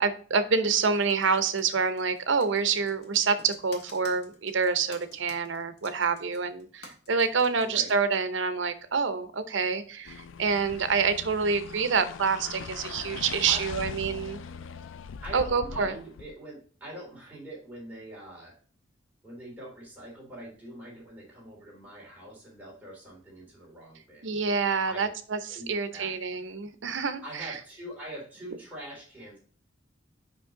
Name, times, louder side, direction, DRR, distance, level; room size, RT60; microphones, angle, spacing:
voice 1, 0.0-14.4 15.3-16.0 24.2-27.5, right 5 dB, 75° right, 11 dB, 0.7 m, -27 dB
Computer keyboard, 0.6-7.9, left 3 dB, 60° left, 1.6 m, -51 dB
voice 2, 7.6-7.9 13.5-13.6 15.2-18.6 19.2-24.3 24.8-25.1 25.5-26.5 27.2-29.4, right 1 dB, 10° right, -5 dB, 3.2 m, -44 dB
sound 1, 10.0-16.3, left 5 dB, 85° left, 0.4 m, -41 dB
5.3 x 5.3 x 3.7 m, 0.43 s
head